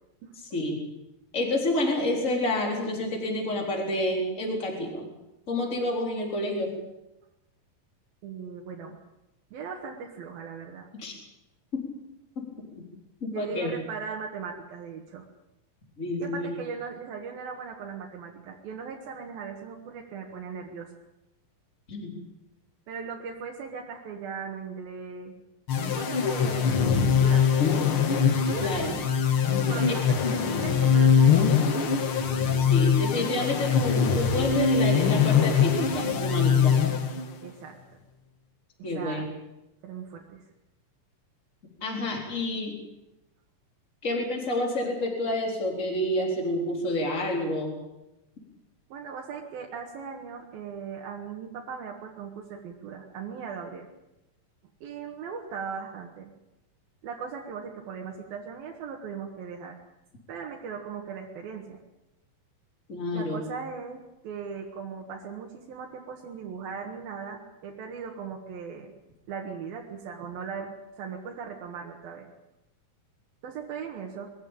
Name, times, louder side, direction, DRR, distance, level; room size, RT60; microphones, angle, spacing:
voice 1, 1.3-5.1 5.5-6.7 11.0-11.1 11.7-11.8 12.4-12.5 13.2-13.7 16.0-16.6 21.9-22.2 28.6-28.9 32.6-36.7 38.8-39.2 41.8-42.8 44.0-47.7 62.9-63.4, left 1 dB, 20° left, 0 dB, 4.2 m, -29 dB
voice 2, 8.2-9.0 9.5-10.9 13.3-15.2 16.2-20.9 22.9-25.3 25.9-27.7 28.4-29.0 29.7-31.8 37.4-38.0 38.8-39.3 39.8-40.4 48.9-53.9 54.8-56.3 57.0-59.8 60.3-61.8 63.1-68.9 69.3-72.3 73.4-74.3, right 6 dB, 85° right, 0 dB, 3.5 m, -38 dB
sound 1, 25.7-37.5, left 6 dB, 50° left, 1.8 m, -23 dB
23.0 x 15.0 x 8.9 m, 0.94 s
omnidirectional pair, 4.1 m